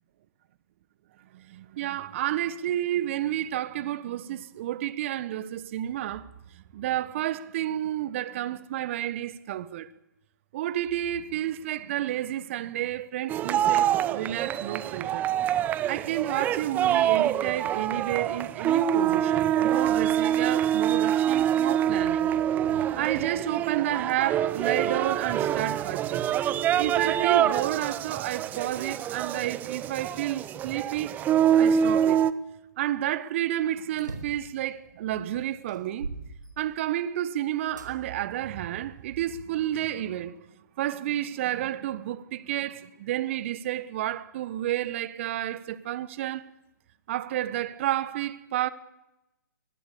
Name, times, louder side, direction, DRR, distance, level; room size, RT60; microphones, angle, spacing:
voice 1, 1.3-6.3 6.7-9.9 10.5-15.3 15.9-22.3 22.6-26.3 26.8-31.1 31.5-32.2 32.8-36.1 36.6-40.4 40.8-46.4 47.1-48.7, right 12 dB, 40° right, 1.2 m, -30 dB
sound 1, 13.3-32.3, right 10 dB, 15° right, 0.8 m, -25 dB
sound 2, 34.0-34.5 35.1-35.2 35.7-37.1 37.8-37.9 38.6-39.7, right 3 dB, 80° right, 4.4 m, -40 dB
23.0 x 21.0 x 6.8 m
figure-of-eight pair, 130°, 10 cm